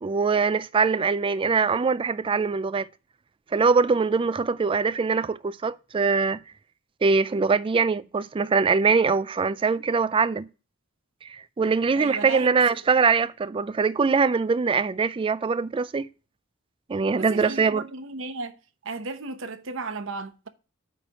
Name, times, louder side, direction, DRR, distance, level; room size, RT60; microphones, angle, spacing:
voice 1, 0.0-2.9 3.5-6.4 7.0-10.5 11.2-16.1 16.9-17.8, right 5 dB, 25° right, 0.3 m, -23 dB
voice 2, 11.9-12.6 17.2-18.5 18.8-20.5, right 3 dB, 65° right, 0.8 m, -34 dB
8.8 x 3.2 x 6.3 m
head